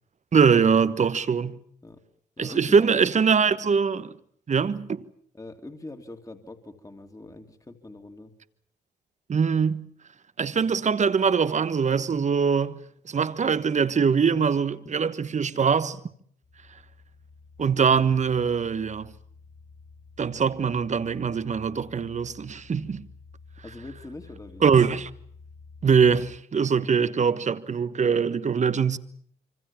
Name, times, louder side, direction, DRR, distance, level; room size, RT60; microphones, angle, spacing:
voice 1, 0.3-1.6 2.4-4.2 4.5-5.0 9.3-9.9 10.4-12.8 13.0-16.0 17.6-19.1 20.2-23.0 24.6-25.1 25.8-29.0, right 6 dB, 40° right, 1.4 m, -22 dB
voice 2, 2.4-3.0 3.5-3.6 5.3-8.3 23.6-24.6, left 2 dB, 20° left, 2.9 m, -43 dB
sound 1, 16.4-26.4, left 4 dB, 50° left, 3.9 m, -50 dB
26.0 x 25.0 x 7.3 m
supercardioid pair, 60°, 18 cm